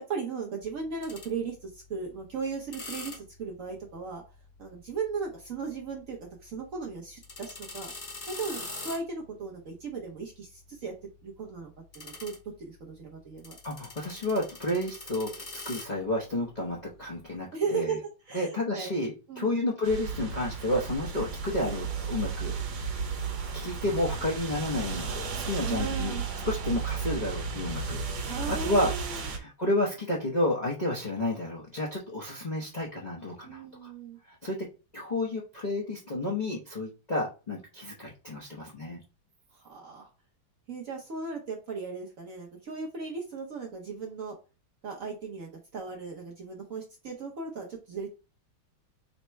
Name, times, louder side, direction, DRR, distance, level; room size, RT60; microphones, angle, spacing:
voice 1, 0.1-4.2 4.6-7.9 8.3-10.9 11.2-13.6 17.5-18.9 19.3-19.6 21.2-21.3 25.6-26.2 28.3-29.2 33.4-34.2 39.5-40.1 40.7-44.3 44.8-48.1, right 5 dB, 60° right, -1 dB, 0.9 m, -37 dB
sound 1, 0.6-17.4, left 3 dB, 35° left, 0.8 m, -46 dB
voice 2, 13.6-15.3 15.6-18.0 18.3-22.5 23.5-28.9 29.3-33.9 34.3-34.6 34.9-39.0, left 1 dB, 55° left, -4 dB, 0.4 m, -31 dB
sound 2, 19.8-29.4, right 5 dB, 90° right, 1.6 m, -34 dB
4.2 x 2.1 x 4.4 m, 0.32 s
omnidirectional pair, 2.1 m